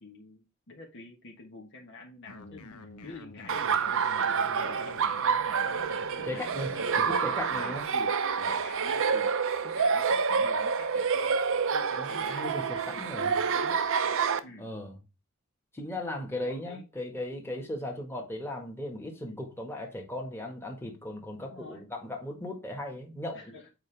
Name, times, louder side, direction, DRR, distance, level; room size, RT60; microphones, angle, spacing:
voice 1, 0.0-5.2 5.6-8.2 8.5-9.3 9.6-13.9 14.4-14.7 16.3-16.8 17.5-17.7 19.3-19.4 21.4-21.9 23.3-23.7, left 3 dB, 60° left, 1.4 m, -48 dB
sound 1, 2.2-7.9, left 3 dB, 85° left, 1.1 m, -48 dB
Laughter, 3.5-14.4, right 6 dB, 60° right, 0.7 m, -28 dB
voice 2, 6.2-6.7 7.0-7.8 8.4-8.6 11.9-13.3 14.6-14.9 15.7-23.7, left 1 dB, 10° left, 1.7 m, -37 dB
8.0 x 5.0 x 3.3 m
head